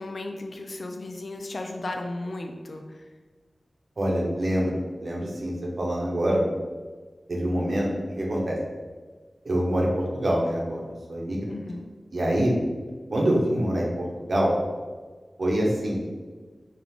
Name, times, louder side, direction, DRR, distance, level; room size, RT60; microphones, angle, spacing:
voice 1, 0.0-2.8 11.5-11.9, left 2 dB, 70° left, 4 dB, 0.5 m, -35 dB
voice 2, 4.0-6.5 7.3-8.6 9.4-10.8 11.1-11.5 12.1-12.5 13.1-14.5 15.4-16.0, equal, 70° right, -3 dB, 1.0 m, -25 dB
4.6 x 2.4 x 3.6 m, 1.4 s
wide cardioid pair, 50°, 0 cm